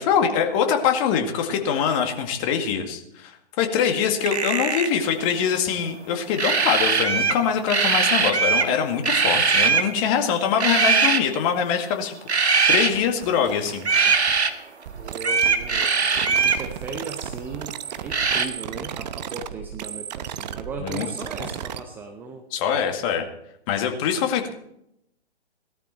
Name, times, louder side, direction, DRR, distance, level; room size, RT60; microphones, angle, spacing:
voice 1, 0.0-13.9 20.8-21.1 21.4-21.5 22.5-23.3 23.7-24.5, left 7 dB, 30° left, 4 dB, 2.1 m, -24 dB
sound 1, 4.2-5.0 6.4-7.4 7.7-8.7 9.0-9.9 10.6-11.2 12.3-12.9 13.8-14.5 15.2-16.6 18.1-18.5, right 5 dB, 75° right, 1.8 m, -20 dB
sound 2, 12.5-14.4 14.9-21.8, right 9 dB, 40° right, 0.9 m, -35 dB
voice 2, 15.0-22.5, right 4 dB, 5° right, 5 dB, 0.5 m, -37 dB
18.0 x 13.0 x 4.4 m, 0.77 s
figure-of-eight pair, 125°, 33 cm